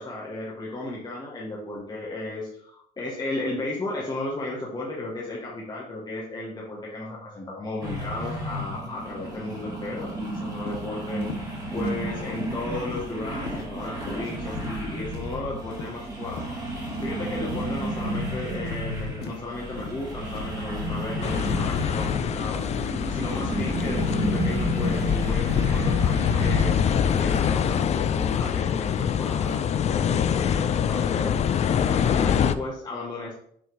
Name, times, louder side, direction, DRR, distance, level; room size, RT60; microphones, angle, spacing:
voice 1, 0.0-33.3, left 2 dB, 25° left, -4 dB, 1.5 m, -34 dB
sound 1, 7.8-27.5, equal, 20° right, 2.2 m, -31 dB
sound 2, 10.7-10.9 11.2-11.4 11.8-12.0 12.3-12.6 12.9-13.2 13.5-13.7 14.0-14.2 14.6-14.8 15.1-15.4 15.7-15.9 16.3-16.5 16.9-17.1 17.5-17.7 18.1-18.3 18.6-18.8 19.2-19.4 19.8-20.0 20.3-20.6 20.9-21.1 21.5-21.7 22.0-22.2 22.6-22.7 23.2-23.4 23.8-24.1 24.3-24.6 24.9-25.1 25.5-25.8 26.1-26.3 26.6-26.8 27.2-27.4 27.7-27.9 28.3-28.5 28.9-29.1 29.4-29.7, left 6 dB, 75° left, 1.0 m, -38 dB
sound 3, 21.2-32.5, left 8 dB, 40° left, 0.4 m, -24 dB
6.3 x 3.5 x 4.6 m, 0.66 s
cardioid pair, 110°, 17 cm